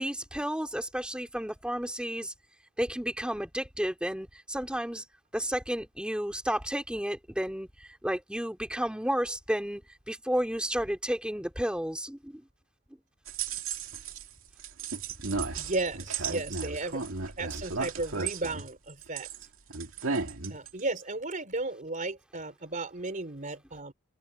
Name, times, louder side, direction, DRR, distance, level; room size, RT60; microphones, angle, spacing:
voice 1, 0.0-2.3 2.8-5.0 5.3-9.8 10.1-12.4 20.1-20.2, equal, 5° right, 2.6 m, -32 dB
sound 1, 13.3-14.3 14.6-19.4 19.7-20.8, right 4 dB, 75° right, 2.6 m, -34 dB
voice 2, 15.6-17.0 17.4-19.3 20.5-23.9, right 2 dB, 40° right, 3.5 m, -34 dB
head